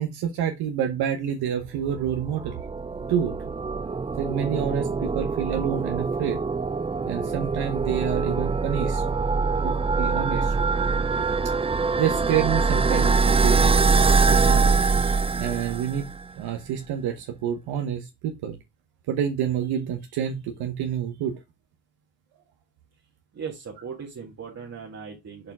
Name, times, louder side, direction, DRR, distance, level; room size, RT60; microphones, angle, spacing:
voice 1, 0.0-2.6 3.1-3.3 4.2-6.4 7.1-9.0 9.6-10.5 12.0-13.7 14.1-14.7 15.4-16.0 16.4-18.6 19.1-21.4, right 9 dB, 70° right, 5 dB, 1.0 m, -28 dB
sound 1, 2.0-16.2, right 4 dB, 15° right, 0.4 m, -23 dB
voice 2, 23.3-25.5, right 6 dB, 40° right, -1 dB, 1.7 m, -38 dB
6.6 x 4.3 x 3.5 m, 0.22 s
supercardioid pair, 75°, 40 cm